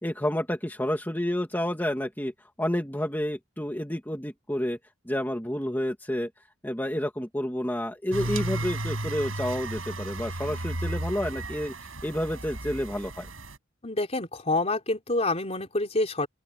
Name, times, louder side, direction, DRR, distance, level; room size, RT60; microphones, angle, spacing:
voice 1, 0.0-4.8 5.1-6.3 6.6-13.3, left 1 dB, 10° left, 2.4 m, -30 dB
sound 1, 8.1-13.6, right 1 dB, 80° right, 7.5 m, -34 dB
voice 2, 13.8-16.3, left 2 dB, 30° left, 3.8 m, -27 dB
open air
head